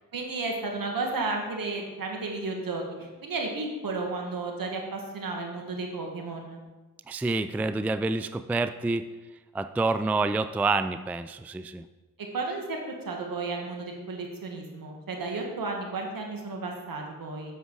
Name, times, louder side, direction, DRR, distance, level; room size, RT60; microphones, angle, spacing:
voice 1, 0.1-6.6 12.3-17.5, right 3 dB, 65° right, 1 dB, 1.9 m, -33 dB
voice 2, 7.1-9.1 9.5-11.8, right 3 dB, 5° right, 11 dB, 0.3 m, -28 dB
7.9 x 6.5 x 4.8 m, 1.2 s
cardioid pair, 50°, 36 cm